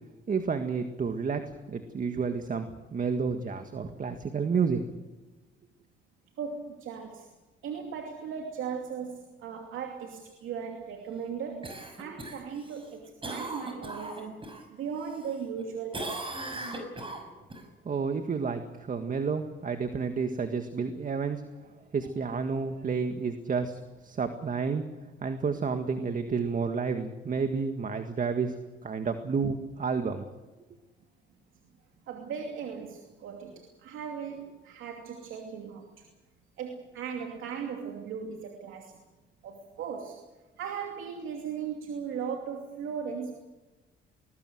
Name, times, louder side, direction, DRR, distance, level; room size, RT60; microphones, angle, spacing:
voice 1, 0.3-4.8 17.8-24.8 25.2-30.2, right 5 dB, 40° right, 7 dB, 1.8 m, -30 dB
voice 2, 6.4-7.3 7.6-11.7 12.0-14.4 14.7-16.2 16.5-16.7 32.1-36.1 36.6-39.0 39.4-40.2 40.6-43.3, right 6 dB, 80° right, 3 dB, 2.8 m, -37 dB
Cough, 11.6-14.6 15.0-15.6 15.9-17.6 22.0-22.1, right 2 dB, 25° right, 6.0 m, -39 dB
21.0 x 20.5 x 7.9 m, 1.2 s
cardioid pair, 90°, 20 cm